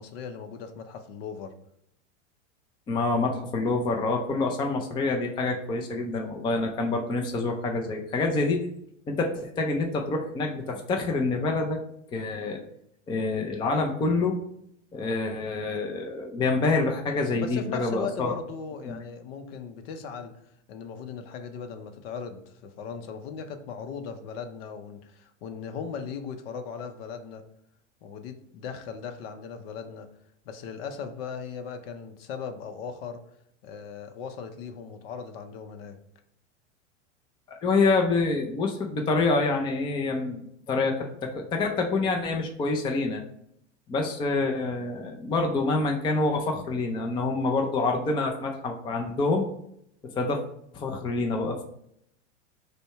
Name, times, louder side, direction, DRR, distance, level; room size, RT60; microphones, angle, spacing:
voice 1, 0.0-1.5 17.3-20.3 20.7-27.4 28.0-30.1 30.4-33.2 33.6-36.0, left 6 dB, 55° left, 7 dB, 0.7 m, -38 dB
voice 2, 2.9-8.7 9.1-11.8 12.1-12.6 13.1-14.4 14.9-18.3 18.8-19.0 37.5-43.2 43.9-49.5 50.2-50.4 50.7-51.6, left 3 dB, 15° left, 2 dB, 0.4 m, -27 dB
5.1 x 2.2 x 4.6 m, 0.73 s
hypercardioid pair, 110°, 36 cm